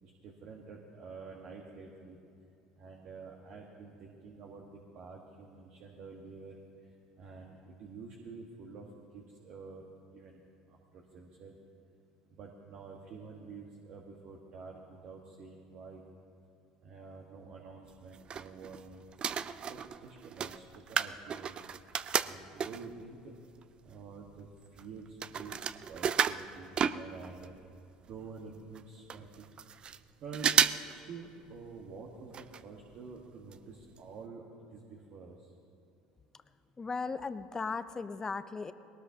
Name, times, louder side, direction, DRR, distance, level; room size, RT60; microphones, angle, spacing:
voice 1, 0.0-2.2 2.8-6.5 6.8-6.9 7.2-8.9 9.1-10.4 10.7-11.5 12.3-16.0 16.8-19.1 19.6-21.6 22.2-23.3 23.8-27.5 28.1-29.4 30.2-30.6 30.9-34.4 34.7-35.5, right 4 dB, 60° right, 0 dB, 1.4 m, -48 dB
sound 1, 17.9-18.8 19.1-23.0 23.6-23.7 23.9-27.5 27.8-27.9 28.1-28.2 28.7-28.8 29.1-30.0 30.3-30.9 31.2-31.3 32.3-32.6 32.9-33.0 33.5-33.6 34.0-34.1, right 8 dB, 40° right, 0.4 m, -32 dB
voice 2, 36.8-38.7, left 4 dB, 25° left, 12 dB, 0.6 m, -37 dB
20.0 x 18.5 x 2.8 m, 2.6 s
supercardioid pair, 90°, 2 cm